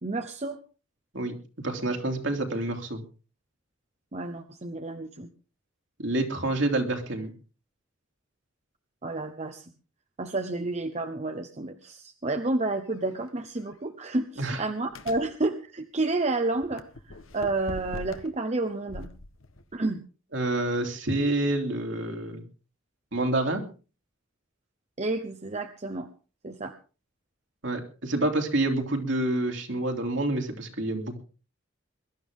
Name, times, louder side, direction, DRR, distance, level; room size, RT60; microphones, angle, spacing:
voice 1, 0.0-0.6 4.1-5.3 9.0-9.7 10.2-19.1 19.7-20.0 25.0-26.1 26.4-26.7, right 2 dB, 35° right, 7 dB, 0.9 m, -30 dB
voice 2, 1.6-3.0 6.0-7.3 14.4-14.6 20.3-22.4 23.1-23.6 27.6-31.2, right 2 dB, 65° right, 4 dB, 2.9 m, -28 dB
sound 1, 12.9-13.1 13.6-13.7 14.9-15.3 16.5-18.4 18.9-19.9, left 2 dB, 80° left, 1.3 m, -42 dB
22.0 x 12.5 x 3.7 m, 0.35 s
head